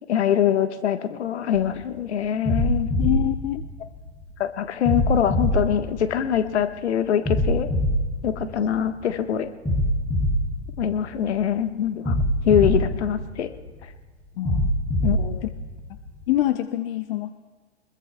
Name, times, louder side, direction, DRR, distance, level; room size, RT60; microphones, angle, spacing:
voice 1, 0.1-2.9 4.4-7.7 8.2-9.5 10.8-12.1 12.4-13.5 15.0-15.4, left 9 dB, 70° left, 8 dB, 1.3 m, -23 dB
sound 1, 1.5-1.8 2.5-4.2 4.9-6.6 7.3-9.0 9.7-11.4 12.1-13.8 14.5-16.2, equal, 5° left, 5.8 m, -25 dB
voice 2, 3.0-3.6 14.4-14.7 16.3-17.3, left 15 dB, 55° left, 10 dB, 0.7 m, -25 dB
26.0 x 21.5 x 2.2 m, 1.4 s
hypercardioid pair, 105°, 35 cm